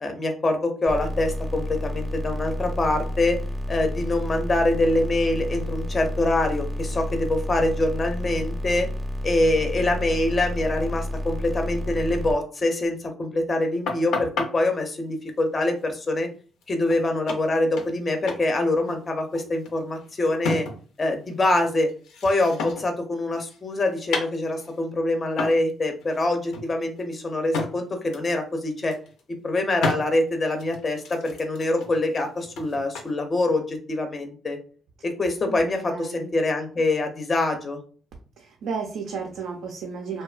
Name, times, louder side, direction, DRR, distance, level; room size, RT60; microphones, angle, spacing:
voice 1, 0.0-3.4 3.7-8.9 9.2-16.3 16.7-20.7 21.0-21.9 22.2-29.0 29.4-34.6 35.0-37.8, left 2 dB, 35° left, 5 dB, 0.5 m, -24 dB
sound 1, 0.9-12.3, equal, 20° right, 0.5 m, -30 dB
sound 2, 13.9-14.5 16.6-16.7 16.9-17.0 17.3-18.0 18.3-18.5 18.8-21.0 21.3-23.0 23.3-24.8 25.4-25.7 26.0-26.2 26.5-27.7 28.1-28.3 28.7-29.2 29.8-30.0 30.6-33.1, left 3 dB, 85° left, 0.5 m, -32 dB
voice 2, 35.5-36.3 38.4-40.2, right 5 dB, 80° right, 2 dB, 0.4 m, -33 dB
2.7 x 2.1 x 2.3 m, 0.40 s
cardioid pair, 90°, 0 cm